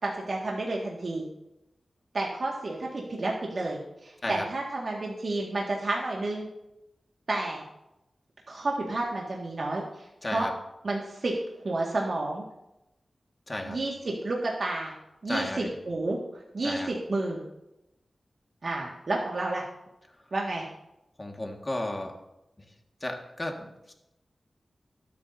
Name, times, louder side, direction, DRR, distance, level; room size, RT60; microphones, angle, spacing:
voice 1, 0.0-1.2 2.1-6.5 7.3-7.6 8.5-10.5 10.8-12.4 13.6-14.9 15.2-16.2 16.5-17.4 18.6-19.6 20.3-20.7, right 2 dB, 60° right, -2 dB, 2.0 m, -30 dB
voice 2, 13.5-13.8 15.3-15.7 16.6-16.9 21.2-22.1 23.0-23.9, left 1 dB, 25° left, 2 dB, 1.9 m, -33 dB
22.5 x 8.4 x 2.8 m, 0.90 s
wide cardioid pair, 75°, 0 cm